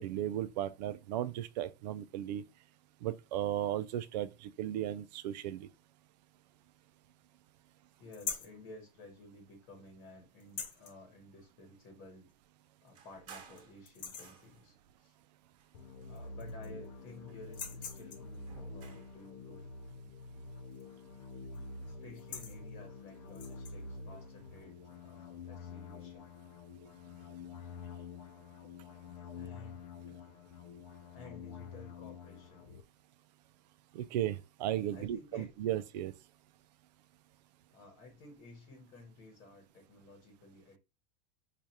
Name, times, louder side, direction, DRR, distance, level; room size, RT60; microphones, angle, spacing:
voice 1, 0.0-2.4 3.0-5.7 33.9-36.1, right 12 dB, 90° right, 0.4 m, -35 dB
voice 2, 8.0-12.3 12.8-15.2 16.1-19.7 21.8-26.3 29.0-30.3 31.1-32.7 34.9-35.6 37.7-40.8, left 2 dB, 35° left, 1.1 m, -54 dB
sound 1, 8.1-8.6 10.4-10.9 12.3-12.4 12.9-13.0 13.4-13.6 13.8-14.4 15.8-15.9 16.1-16.9 17.4-18.4 20.7-21.0 21.3-21.6 22.0-22.6 23.3-23.8, left 7 dB, 85° left, 1.0 m, -43 dB
sound 2, 12.9-14.8 15.5-16.7 17.0-19.2, right 5 dB, 55° right, 1.1 m, -57 dB
sound 3, 15.7-32.8, left 4 dB, 60° left, 0.5 m, -48 dB
4.7 x 2.4 x 2.7 m
supercardioid pair, 175°, 21 cm